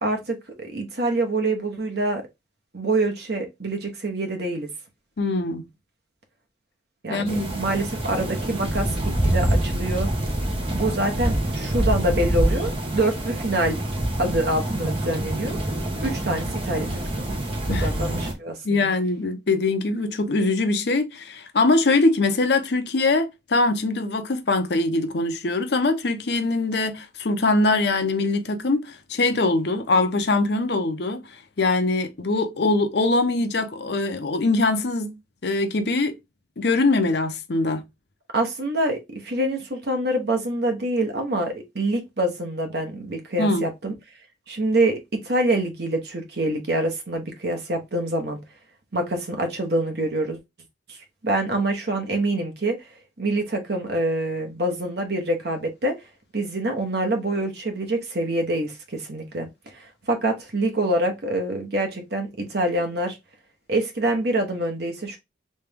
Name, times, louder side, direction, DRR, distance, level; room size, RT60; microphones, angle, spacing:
voice 1, 0.0-2.2 2.7-4.7 7.0-10.1 10.7-13.8 14.2-15.6 16.0-17.3 17.7-18.9 38.3-43.9 44.5-48.4 48.9-50.4 50.9-51.0 51.2-52.9 53.2-56.0 56.3-63.2 63.7-65.2, right 1 dB, 60° right, 1.0 m, -26 dB
voice 2, 5.2-5.7 7.1-7.5 17.7-17.9 18.6-31.2 31.6-35.2 35.4-36.2 36.6-37.8 43.4-43.6, left 3 dB, 60° left, 0.7 m, -22 dB
sound 1, 7.3-18.3, right 1 dB, 30° right, 1.0 m, -26 dB
3.4 x 3.2 x 3.4 m
head